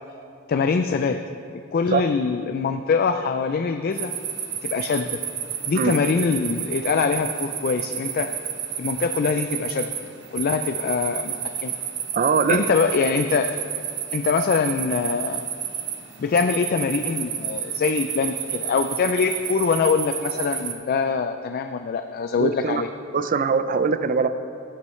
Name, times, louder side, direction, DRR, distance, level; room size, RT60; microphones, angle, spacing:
voice 1, 0.5-1.2 1.7-4.1 4.6-5.2 5.7-8.3 8.8-9.9 10.3-11.3 11.6-11.8 12.5-13.6 14.1-15.4 16.2-22.9, left 5 dB, 50° left, 8 dB, 0.4 m, -23 dB
sound 1, 3.9-20.7, right 9 dB, 65° right, 1.0 m, -31 dB
voice 2, 12.1-12.7 22.4-22.8 23.1-24.3, right 5 dB, 45° right, 12 dB, 0.4 m, -21 dB
16.0 x 8.4 x 3.2 m, 2.5 s
head